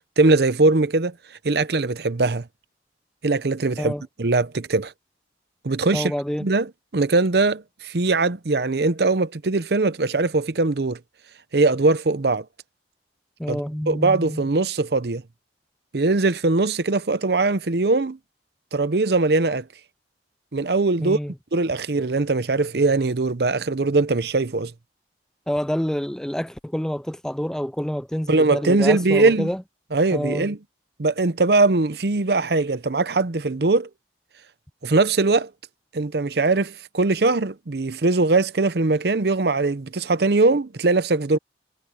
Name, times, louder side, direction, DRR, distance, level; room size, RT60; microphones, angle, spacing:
voice 1, 0.2-1.1 1.4-2.5 3.2-3.9 4.2-4.9 5.6-6.1 6.4-6.7 6.9-11.0 11.5-12.4 13.5-13.6 13.9-15.2 15.9-18.2 18.7-19.7 20.5-21.2 21.5-24.7 28.3-29.5 29.9-30.6 31.0-33.9 34.8-35.5 35.9-41.4, right 3 dB, 65° right, 0.7 m, -21 dB
voice 2, 5.9-6.5 13.4-14.5 21.0-21.3 25.5-29.6 30.1-30.5, equal, 5° left, 0.4 m, -27 dB
head